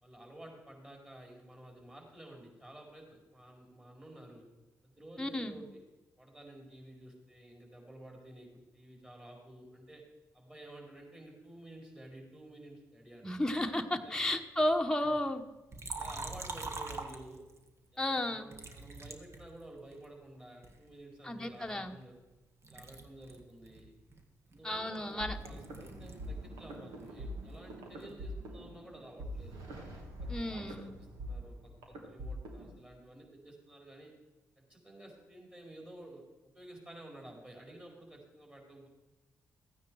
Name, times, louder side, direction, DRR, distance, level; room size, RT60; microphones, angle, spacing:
voice 1, 0.0-4.5 4.8-5.8 6.2-10.0 10.3-13.4 14.0-14.2 15.0-15.2 15.9-17.4 17.9-22.2 22.7-23.9 24.5-29.6 29.9-30.9 31.2-34.1 34.6-38.9, right 1 dB, 20° right, 0 dB, 4.6 m, -52 dB
voice 2, 5.2-5.6 13.2-15.4 18.0-18.5 21.2-21.9 24.6-25.4 30.3-30.9, left 1 dB, 10° left, 4 dB, 1.1 m, -33 dB
Liquid, 15.7-17.7 18.5-20.1 20.6-22.4 22.6-26.3 26.6-28.2, right 3 dB, 45° right, 1.5 m, -45 dB
sound 1, 25.2-32.8, equal, 80° right, 2.0 m, -44 dB
14.0 x 9.4 x 4.7 m, 1.1 s
supercardioid pair, 60°, 6 cm